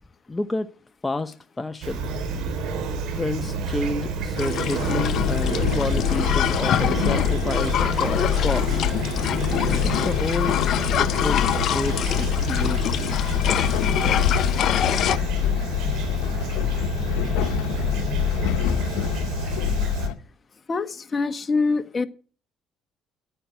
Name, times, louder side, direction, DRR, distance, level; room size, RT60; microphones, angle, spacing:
voice 1, 0.3-0.7 1.0-2.0 3.2-8.8 9.8-10.6 10.9-13.1, left 2 dB, 20° left, 8 dB, 0.9 m, -29 dB
Fowl / Chirp tweet, 1.8-20.1, right 4 dB, 75° right, 3.0 m, -29 dB
sound 1, 4.4-15.2, left 10 dB, 65° left, 0.7 m, -26 dB
Train, 5.0-20.1, left 11 dB, 90° left, 1.0 m, -26 dB
voice 2, 20.7-22.1, left 4 dB, 35° left, 10 dB, 1.4 m, -24 dB
12.0 x 9.1 x 8.1 m, 0.40 s
supercardioid pair, 85°, 0 cm